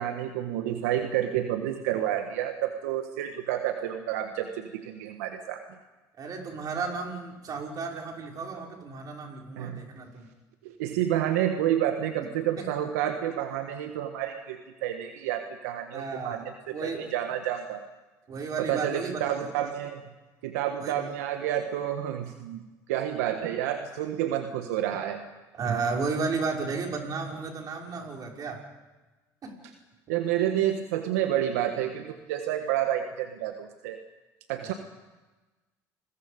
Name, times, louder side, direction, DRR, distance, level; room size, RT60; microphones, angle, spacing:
voice 1, 0.0-5.6 9.6-9.8 10.6-16.5 16.8-17.8 18.6-20.0 20.4-22.6 22.9-25.2 30.1-34.0 34.5-34.7, right 11 dB, 85° right, 6 dB, 1.5 m, -29 dB
voice 2, 6.2-10.3 12.6-12.7 15.9-17.1 18.3-19.3 20.8-21.0 25.5-28.6 29.4-29.6 34.6-34.8, right 4 dB, 45° right, 0 dB, 6.1 m, -33 dB
29.0 x 22.0 x 5.3 m, 1.2 s
supercardioid pair, 80°, 8 cm